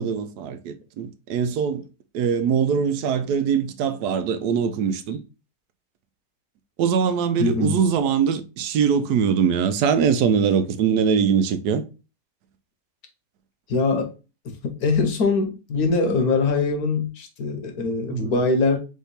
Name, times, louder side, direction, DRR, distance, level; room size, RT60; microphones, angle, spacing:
voice 1, 0.0-1.8 2.1-5.2 6.8-11.8 18.1-18.3, right 7 dB, 85° right, 1.2 m, -22 dB
voice 2, 7.4-7.8 13.7-14.1 14.4-18.8, left 3 dB, 70° left, 1.4 m, -22 dB
3.6 x 3.6 x 4.0 m
omnidirectional pair, 1.7 m